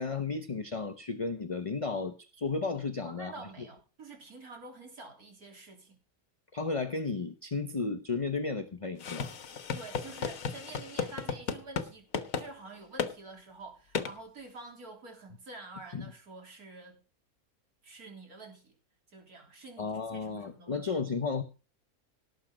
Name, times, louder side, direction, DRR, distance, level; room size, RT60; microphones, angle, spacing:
voice 1, 0.0-3.3 6.5-9.3 15.9-16.1 19.8-21.4, left 4 dB, 30° left, 0.8 m, -33 dB
voice 2, 3.0-6.0 9.7-12.1 12.4-17.0 17.8-18.7 19.1-20.9, right 3 dB, 85° right, 3.9 m, -48 dB
sound 1, 9.0-11.9 12.1-12.5 13.0-13.1 13.9-14.1, left 6 dB, 70° left, 1.6 m, -34 dB
18.0 x 8.1 x 5.0 m
omnidirectional pair, 1.5 m